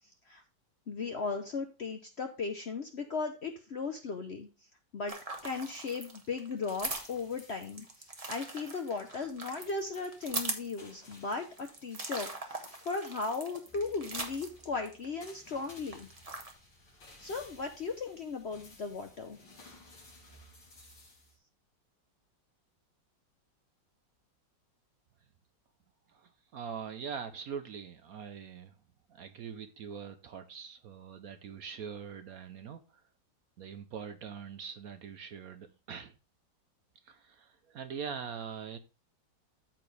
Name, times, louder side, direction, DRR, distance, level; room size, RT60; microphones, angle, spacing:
voice 1, 0.9-4.5 4.9-5.2 5.4-7.9 8.3-16.1 17.2-19.4, left 4 dB, 55° left, 0.7 m, -37 dB
sound 1, 5.1-15.3 15.6-16.5, right 2 dB, 25° right, 1.0 m, -41 dB
sound 2, 6.6-21.4, left 1 dB, 80° left, 3.5 m, -58 dB
voice 2, 26.1-28.7 29.1-33.0 33.6-36.1 37.0-38.8, right 7 dB, 65° right, 1.0 m, -43 dB
13.0 x 4.5 x 3.2 m
omnidirectional pair, 2.0 m